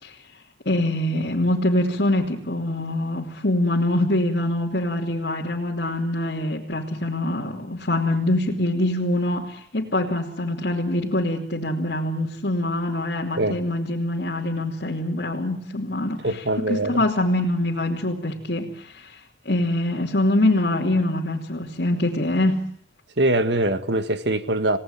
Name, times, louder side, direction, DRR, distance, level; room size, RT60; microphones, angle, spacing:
voice 1, 0.6-22.7, left 1 dB, 65° left, 2.9 m, -24 dB
voice 2, 16.2-17.1 23.2-24.8, right 1 dB, 80° right, 1.9 m, -23 dB
28.0 x 18.5 x 9.0 m
head